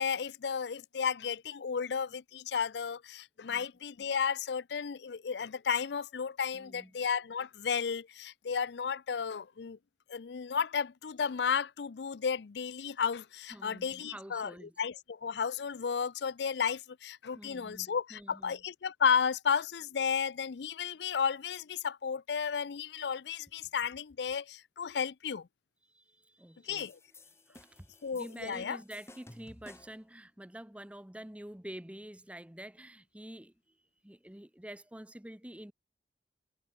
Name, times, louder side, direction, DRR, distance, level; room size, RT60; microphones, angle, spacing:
voice 1, 0.0-9.8 10.1-25.5 26.6-27.0 28.0-28.8, left 6 dB, 70° left, 0.5 m, -33 dB
voice 2, 6.5-7.0 13.5-14.8 17.3-18.6 25.9-26.9 27.4-33.5 34.0-35.7, right 1 dB, 5° right, 0.7 m, -48 dB
sound 1, 26.8-30.1, left 2 dB, 15° left, 2.5 m, -55 dB
head